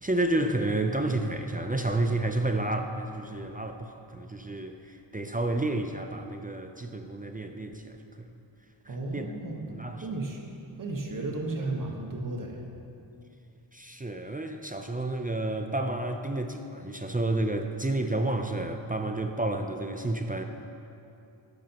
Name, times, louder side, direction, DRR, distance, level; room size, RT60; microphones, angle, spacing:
voice 1, 0.0-8.3 8.9-9.3 9.7-10.1 13.7-20.4, right 2 dB, 20° right, 5 dB, 0.5 m, -30 dB
voice 2, 8.9-10.4 10.8-12.6, right 2 dB, 40° right, 0 dB, 1.4 m, -34 dB
13.5 x 11.0 x 3.0 m, 2.7 s
wide cardioid pair, 90°, 48 cm